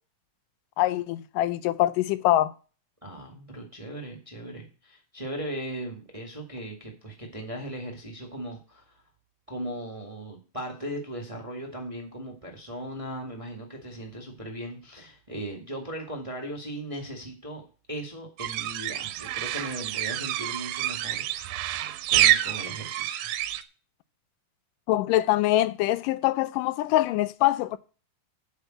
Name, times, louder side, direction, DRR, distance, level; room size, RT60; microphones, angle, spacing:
voice 1, 0.8-2.5 24.9-27.8, left 15 dB, 85° left, 2.2 m, -24 dB
voice 2, 3.0-9.0 9.5-21.6 22.1-23.3, right 1 dB, 15° right, 1.2 m, -38 dB
sound 1, 18.4-23.6, right 13 dB, 80° right, 2.0 m, -27 dB
8.3 x 5.3 x 7.7 m
omnidirectional pair, 3.7 m